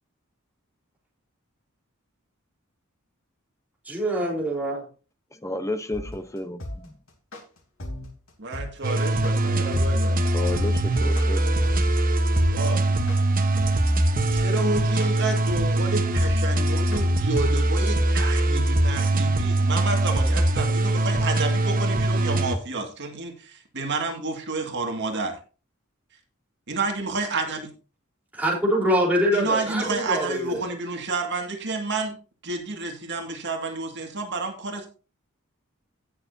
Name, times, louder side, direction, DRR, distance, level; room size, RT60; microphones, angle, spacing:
voice 1, 3.9-4.9 28.3-30.6, equal, 10° right, 3.9 m, -24 dB
voice 2, 5.3-6.9 10.3-11.6, left 2 dB, 15° left, 0.9 m, -32 dB
sound 1, 5.9-17.0, left 1 dB, 70° left, 3.4 m, -36 dB
voice 3, 8.4-10.2 12.4-12.8 14.3-25.4 26.7-27.7 29.3-32.2 32.4-34.9, right 3 dB, 60° right, 2.1 m, -30 dB
sound 2, 8.8-22.6, right 1 dB, 45° right, 1.1 m, -22 dB
17.5 x 6.8 x 2.7 m
head